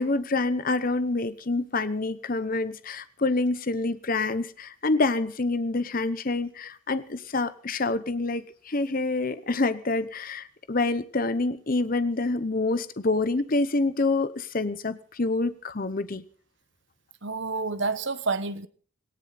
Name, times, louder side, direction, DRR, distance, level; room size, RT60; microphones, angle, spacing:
voice 1, 0.0-16.2, left 3 dB, 40° left, 13 dB, 0.8 m, -27 dB
voice 2, 17.2-18.7, right 3 dB, 55° right, 13 dB, 1.1 m, -29 dB
18.0 x 18.0 x 4.1 m, 0.43 s
head